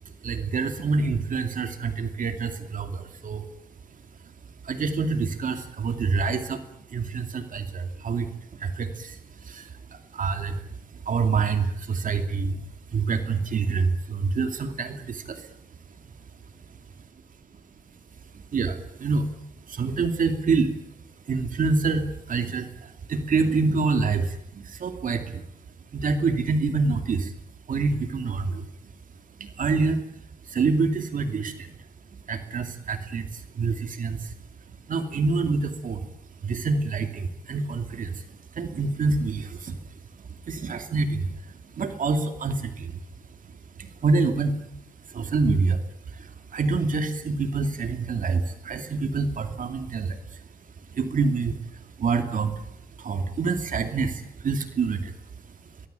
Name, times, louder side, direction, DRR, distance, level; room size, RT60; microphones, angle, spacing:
voice 1, 0.2-3.5 4.6-6.6 6.9-8.3 8.6-10.6 11.0-12.6 12.9-15.5 18.3-19.3 19.7-20.8 21.3-25.5 25.9-27.3 27.7-28.7 29.4-30.0 30.5-31.7 32.3-34.3 34.9-36.1 36.4-38.3 38.5-39.8 40.5-43.0 43.8-44.6 45.1-45.8 46.1-50.4 50.9-51.6 52.0-52.6 53.0-55.1, right 4 dB, 55° right, 7 dB, 2.6 m, -26 dB
23.0 x 21.5 x 9.2 m, 0.79 s
wide cardioid pair, 140°, 16 cm